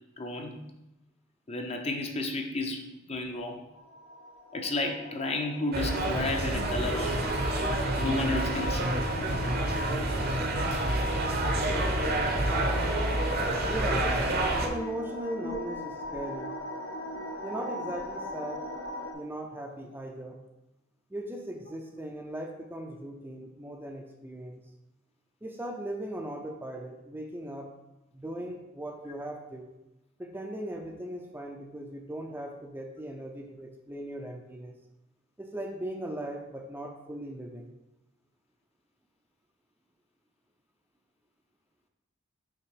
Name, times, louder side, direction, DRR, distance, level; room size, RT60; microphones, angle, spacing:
voice 1, 0.2-0.6 1.5-3.6 4.5-7.5 8.0-8.9 15.4-15.6, left 2 dB, 30° left, 4 dB, 0.6 m, -32 dB
sound 1, 3.7-19.1, left 1 dB, 85° left, 1.1 m, -38 dB
sound 2, 5.7-14.7, right 1 dB, 45° right, 0.8 m, -28 dB
voice 2, 13.6-14.1 14.6-16.6 17.4-18.6 19.1-20.4 21.1-24.6 25.4-27.7 28.1-29.7 30.2-34.7 35.4-37.7, right 1 dB, 10° right, 2 dB, 0.5 m, -38 dB
5.9 x 3.8 x 4.8 m, 0.95 s
head